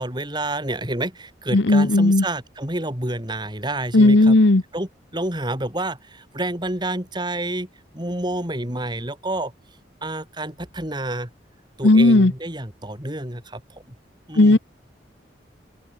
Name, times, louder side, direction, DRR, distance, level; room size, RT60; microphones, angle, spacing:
voice 1, 0.0-4.4 4.7-7.7 7.9-9.5 10.0-11.3 11.8-13.6 13.9-14.0 14.3-14.6, right 1 dB, 25° right, 4.7 m, -29 dB
voice 2, 1.5-2.2 3.9-4.6 11.8-12.3 14.3-14.6, left 2 dB, 80° left, 1.1 m, -14 dB
open air
head